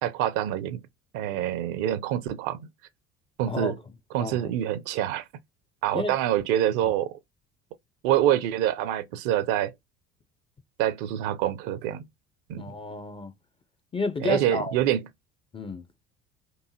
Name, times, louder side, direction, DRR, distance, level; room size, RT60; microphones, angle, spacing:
voice 1, 0.0-0.8 1.1-2.7 3.4-3.7 4.1-5.2 5.8-7.2 8.0-9.7 10.8-12.0 12.5-12.6 14.2-15.0, right 12 dB, 55° right, 0.6 m, -26 dB
voice 2, 4.2-4.5 5.9-6.2 12.6-13.3 13.9-14.7 15.5-15.9, left 2 dB, 15° left, 0.4 m, -31 dB
4.6 x 2.5 x 2.8 m
figure-of-eight pair, 60°, 37 cm